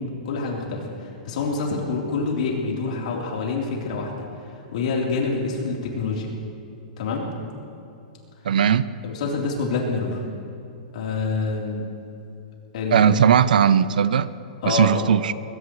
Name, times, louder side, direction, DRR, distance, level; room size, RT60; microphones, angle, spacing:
voice 1, 0.0-4.2 4.7-6.3 7.0-7.3 9.0-10.2 10.9-11.9 12.7-13.1 14.6-15.0, left 4 dB, 60° left, -2 dB, 3.9 m, -26 dB
voice 2, 8.4-8.9 12.9-14.3 14.7-15.3, right 8 dB, 85° right, 16 dB, 0.7 m, -18 dB
22.0 x 20.0 x 3.3 m, 2.7 s
hypercardioid pair, 165°, 4 cm